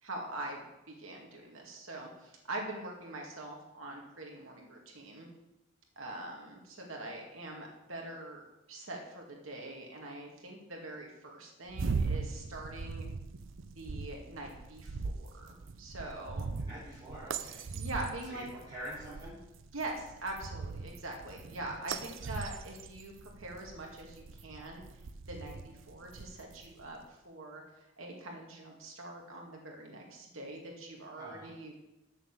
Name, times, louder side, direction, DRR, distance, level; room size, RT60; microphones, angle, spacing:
voice 1, 0.0-5.3 6.0-8.4 8.7-13.1 13.8-16.5 17.7-18.4 19.7-24.8 25.3-27.6 28.0-31.7, right 2 dB, 85° right, 0 dB, 2.2 m, -43 dB
sound 1, 11.7-26.9, right 4 dB, 70° right, 0.6 m, -40 dB
voice 2, 16.4-17.7 18.2-19.3 22.0-22.3 31.2-31.5, equal, 25° right, -11 dB, 4.4 m, -46 dB
7.1 x 7.1 x 7.3 m, 0.93 s
head